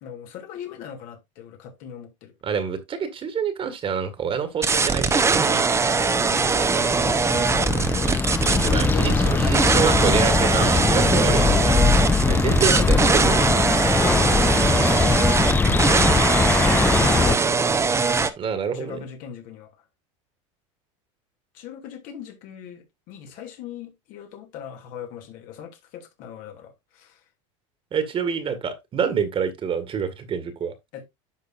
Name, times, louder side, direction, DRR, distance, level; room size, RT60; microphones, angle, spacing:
voice 1, 0.0-2.3 7.0-10.1 16.7-17.7 18.7-19.7 21.5-27.2 30.9-31.1, left 8 dB, 60° left, 2.8 m, -40 dB
voice 2, 2.4-6.0 6.6-6.7 8.5-11.8 12.3-13.5 18.4-19.1 27.9-30.7, right 7 dB, 35° right, 1.9 m, -27 dB
sound 1, 4.6-18.3, right 4 dB, 15° right, 1.0 m, -21 dB
sound 2, 5.5-17.4, left 4 dB, 10° left, 0.4 m, -22 dB
10.5 x 6.3 x 2.6 m
supercardioid pair, 110°, 16 cm